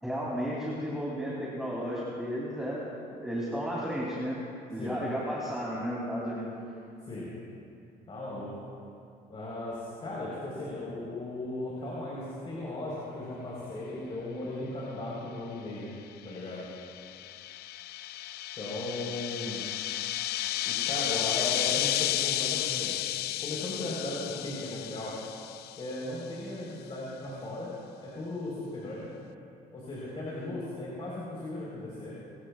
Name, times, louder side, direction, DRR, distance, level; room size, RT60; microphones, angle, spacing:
voice 1, 0.0-2.8 3.1-4.4 4.7-6.5, equal, 5° right, -6 dB, 2.9 m, -33 dB
voice 2, 8.1-8.5 9.3-15.9 16.2-16.6 18.5-19.6 20.6-23.0 23.4-25.1 25.8-27.7 28.0-29.1 29.7-32.1, left 2 dB, 35° left, -6 dB, 4.1 m, -37 dB
sound 1, 16.3-26.1, left 14 dB, 70° left, 0.4 m, -32 dB
30.0 x 14.5 x 2.4 m, 2.6 s
cardioid pair, 110°, 17 cm